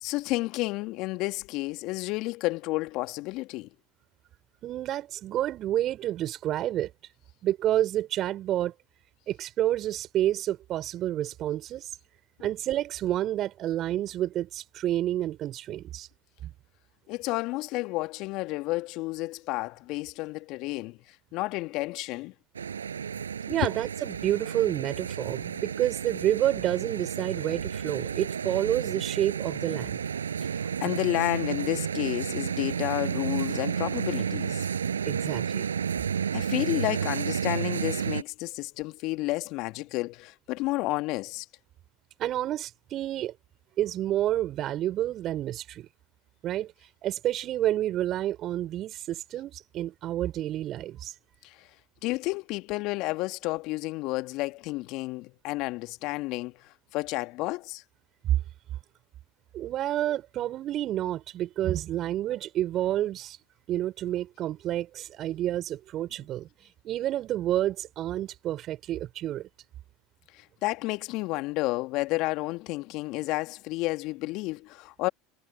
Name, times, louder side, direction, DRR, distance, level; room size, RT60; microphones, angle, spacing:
voice 1, 0.0-3.7 17.1-22.3 23.6-23.7 30.4-34.7 36.3-41.5 51.4-51.7 52.0-57.8 70.3-75.1, left 21 dB, 55° left, 1.8 m, -31 dB
voice 2, 4.6-6.9 7.4-8.7 9.3-11.9 12.4-16.1 16.4-16.5 23.5-30.0 35.1-35.7 42.2-43.3 43.8-45.9 46.4-46.7 47.0-51.1 59.5-63.4 63.7-66.5 66.8-69.5, right 13 dB, 45° right, 5.1 m, -29 dB
sound 1, 22.5-38.2, right 7 dB, 85° right, 7.0 m, -31 dB
hypercardioid pair, 75°, 0 cm